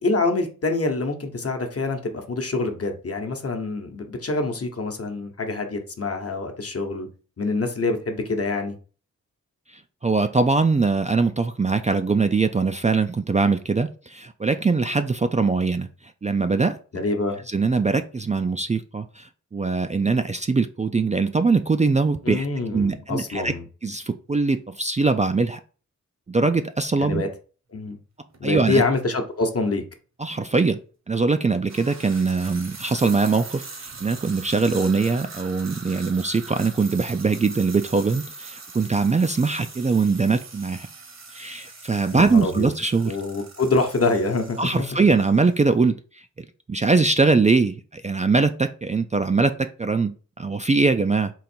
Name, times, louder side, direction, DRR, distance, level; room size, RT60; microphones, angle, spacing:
voice 1, 0.0-7.1 7.4-8.7 16.9-17.4 22.2-23.6 27.0-27.3 27.7-28.0 28.4-29.8 42.1-42.7 43.1-44.9, left 3 dB, 50° left, 5 dB, 1.0 m, -25 dB
voice 2, 10.0-15.9 16.2-16.8 17.5-22.5 22.7-23.5 23.8-25.6 26.3-27.2 28.4-28.8 30.2-30.8 31.1-40.9 41.3-43.2 44.6-46.0 46.7-51.3, right 4 dB, 25° right, 8 dB, 0.4 m, -22 dB
sound 1, 28.3-28.4 29.4-29.5 31.5-45.7, right 4 dB, 55° right, 1.1 m, -41 dB
3.9 x 2.5 x 4.3 m, 0.37 s
cardioid pair, 50°, 31 cm